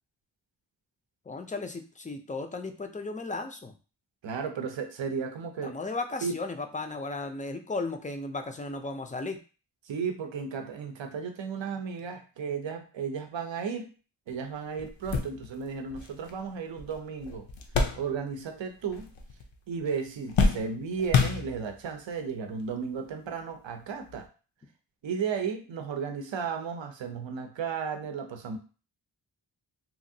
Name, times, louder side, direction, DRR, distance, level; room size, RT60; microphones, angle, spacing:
voice 1, 1.3-3.7 5.6-9.4, left 3 dB, 20° left, 6 dB, 0.4 m, -35 dB
voice 2, 4.2-5.8 6.2-6.4 9.9-13.9 14.3-17.5 18.0-19.1 19.7-24.3 25.0-28.6, right 6 dB, 75° right, 6 dB, 0.6 m, -34 dB
sound 1, 14.3-14.4 14.8-18.6 18.8-19.6 19.9-21.9 22.7-22.8 24.1-24.2, left 4 dB, 80° left, 0.6 m, -29 dB
2.9 x 2.5 x 2.6 m, 0.35 s
wide cardioid pair, 60°, 45 cm